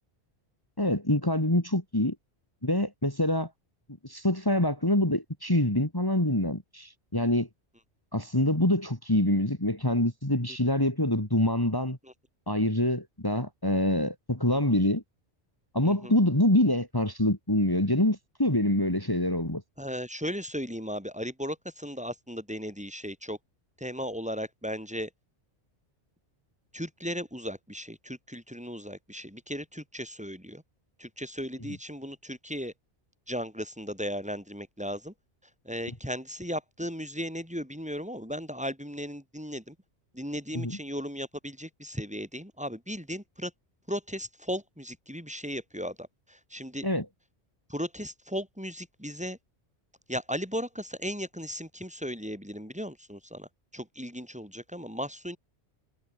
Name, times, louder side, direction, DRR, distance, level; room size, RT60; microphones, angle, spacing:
voice 1, 0.8-2.1 2.6-3.5 4.0-7.5 8.1-12.0 12.5-15.0 15.7-19.6 40.5-40.8 46.8-47.0, left 1 dB, 20° left, 3.4 m, -25 dB
voice 2, 19.8-23.4 23.8-25.1 26.7-30.6 31.0-32.7 33.3-35.1 35.6-39.7 40.1-43.5 43.9-46.9 47.7-49.4 50.1-53.5 53.7-55.4, equal, 5° right, 6.2 m, -36 dB
omnidirectional pair, 1.2 m